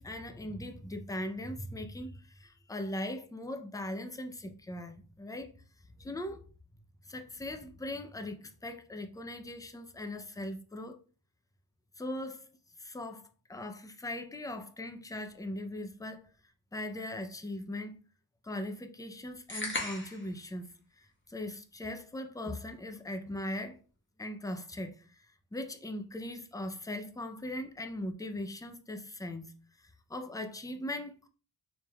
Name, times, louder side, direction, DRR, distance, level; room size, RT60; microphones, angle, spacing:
voice 1, 0.0-5.5 6.0-6.4 7.1-11.0 12.0-12.4 12.8-13.2 13.5-16.3 16.7-18.0 18.4-23.8 24.2-25.3 25.5-29.5 30.1-31.3, left 1 dB, 10° left, 0.5 m, -39 dB
sound 1, 19.5-20.3, left 2 dB, 25° left, 1.1 m, -36 dB
4.0 x 3.4 x 2.3 m
wide cardioid pair, 40°, 45 cm